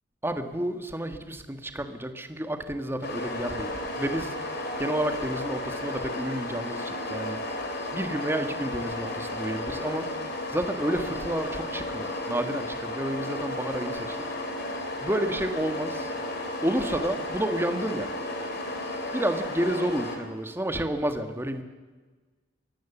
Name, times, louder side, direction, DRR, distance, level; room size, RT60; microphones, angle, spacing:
voice 1, 0.2-3.7 4.0-4.3 4.8-7.4 7.9-10.1 10.5-14.2 15.0-16.1 16.6-18.1 19.1-21.6, right 1 dB, 15° right, 8 dB, 1.6 m, -30 dB
sound 1, 3.0-20.2, left 1 dB, 60° left, 3.8 m, -33 dB
23.0 x 17.0 x 7.2 m, 1.3 s
head